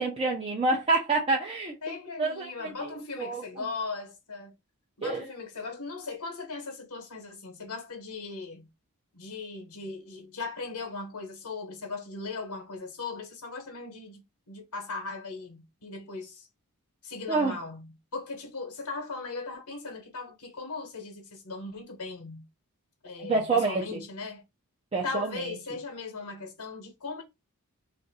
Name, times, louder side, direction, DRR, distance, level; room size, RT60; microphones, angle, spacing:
voice 1, 0.0-2.9 3.2-3.6 5.0-5.2 17.3-17.6 23.2-24.0 24.9-25.5, right 3 dB, 25° right, 0.6 m, -28 dB
voice 2, 1.8-4.5 5.0-8.7 9.1-16.5 17.0-22.4 23.0-24.4 25.0-27.2, left 3 dB, 90° left, 1.0 m, -38 dB
2.6 x 2.5 x 4.0 m
head